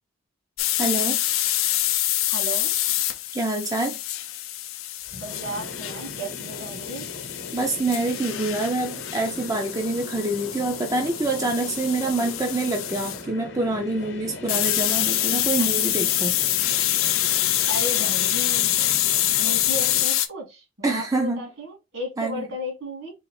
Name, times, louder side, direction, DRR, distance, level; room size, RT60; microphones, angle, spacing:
sound 1, 0.6-13.2 14.5-20.3, left 13 dB, 75° left, 0.5 m, -26 dB
voice 1, 0.8-1.2 3.3-4.0 7.5-16.3 20.8-21.5 22.2-22.4, right 2 dB, 15° right, 0.4 m, -26 dB
voice 2, 2.3-2.7 5.1-7.1 12.0-12.3 15.6-15.7 17.7-18.7 19.4-23.1, equal, 70° right, 2.1 m, -34 dB
sound 2, 5.1-20.0, left 2 dB, 55° left, 0.9 m, -39 dB
3.8 x 3.0 x 3.1 m
head